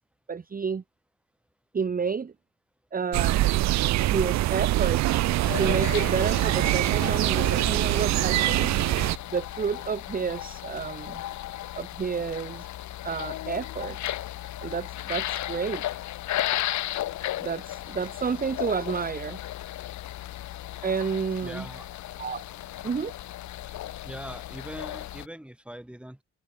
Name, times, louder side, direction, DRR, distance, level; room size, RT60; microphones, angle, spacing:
voice 1, 0.3-0.8 1.7-2.3 2.9-3.5 4.1-5.2 5.6-8.7 9.3-11.2 11.7-12.7 13.0-14.1 14.6-15.8 17.4-19.4 20.8-21.6 22.2-22.4 22.8-23.1, right 6 dB, 30° right, 1.1 m, -30 dB
sound 1, 3.1-9.2, right 16 dB, 65° right, 0.5 m, -24 dB
sound 2, 5.4-25.3, left 14 dB, 70° left, 0.9 m, -35 dB
voice 2, 21.4-21.9 24.0-26.2, right 1 dB, 5° right, 4.8 m, -41 dB
cardioid pair, 90°, 30 cm